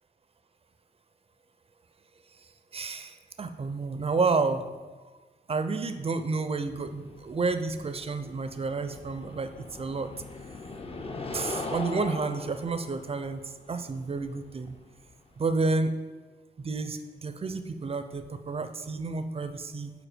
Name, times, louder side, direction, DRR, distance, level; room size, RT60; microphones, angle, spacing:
voice 1, 2.7-4.6 5.5-10.1 11.3-14.8 15.4-15.9 16.6-19.9, right 3 dB, 30° right, 10 dB, 0.5 m, -30 dB
sound 1, 6.7-15.5, left 3 dB, 30° left, 0.6 m, -40 dB
5.0 x 4.2 x 5.0 m, 1.3 s
cardioid pair, 80°, 19 cm